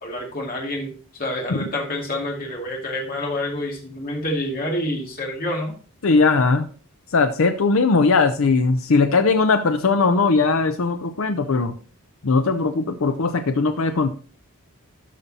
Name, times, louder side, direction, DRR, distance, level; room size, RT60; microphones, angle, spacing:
voice 1, 0.0-5.7, left 1 dB, 40° left, -1 dB, 2.3 m, -28 dB
voice 2, 6.0-6.6 7.1-11.7 12.2-14.1, left 4 dB, 70° left, 7 dB, 0.6 m, -19 dB
12.5 x 5.4 x 2.8 m, 0.39 s
head